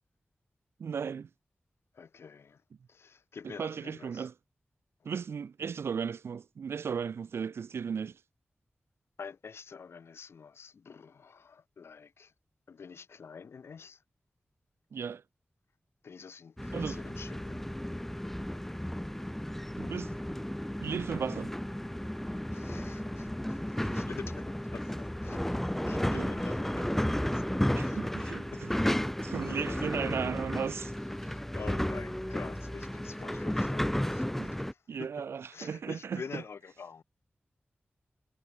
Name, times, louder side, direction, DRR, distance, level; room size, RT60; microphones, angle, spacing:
voice 1, 0.8-1.3 3.4-4.3 5.0-8.2 14.9-15.2 16.7-17.0 19.8-20.1 20.8-21.5 26.1-26.3 27.7-28.5 28.9-30.9 34.4-34.5 34.9-36.4, right 6 dB, 85° right, 0.4 m, -36 dB
voice 2, 1.9-2.6 2.9-4.3 9.2-12.3 12.7-14.0 16.0-17.6 22.5-27.4 27.8-28.0 28.5-28.6 29.5-29.8 31.2-35.2 35.5-37.0, left 6 dB, 90° left, 1.9 m, -47 dB
sound 1, 16.6-34.7, left 1 dB, 5° left, 0.4 m, -33 dB
cardioid pair, 50°, 4 cm